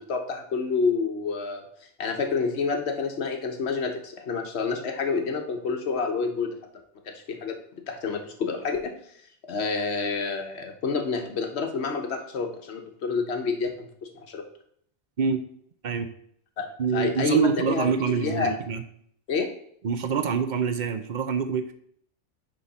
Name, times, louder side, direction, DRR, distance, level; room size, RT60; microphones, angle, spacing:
voice 1, 0.0-1.6 2.0-6.5 7.1-8.9 9.5-13.9 14.1-14.4 16.6-17.9 18.2-18.5 19.3-19.5, left 4 dB, 60° left, 4 dB, 1.2 m, -28 dB
voice 2, 16.8-18.8 19.8-21.7, right 6 dB, 50° right, 9 dB, 0.6 m, -25 dB
9.7 x 3.7 x 4.1 m, 0.65 s
omnidirectional pair, 1.3 m